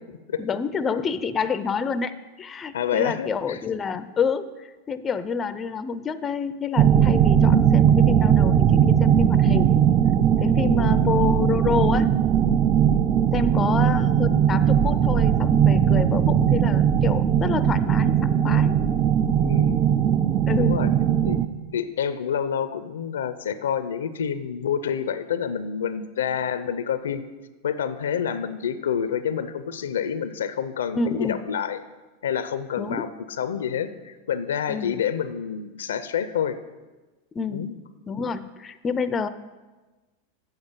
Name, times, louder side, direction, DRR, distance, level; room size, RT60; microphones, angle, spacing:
voice 1, 0.4-9.8 10.4-12.1 13.3-18.7 20.5-20.8 30.9-31.4 32.8-33.1 34.7-35.0 37.3-37.7 38.1-39.3, left 5 dB, 25° left, 13 dB, 0.4 m, -28 dB
voice 2, 2.7-3.6 10.6-11.1 19.4-19.9 20.6-20.9 21.2-21.4 21.7-27.2 27.6-31.8 32.2-33.1 33.4-36.6 37.5-37.7, left 8 dB, 85° left, 13 dB, 0.5 m, -28 dB
sound 1, 6.8-21.5, right 9 dB, 30° right, 0.5 m, -19 dB
7.8 x 7.3 x 5.2 m, 1.2 s
hypercardioid pair, 105°, 0 cm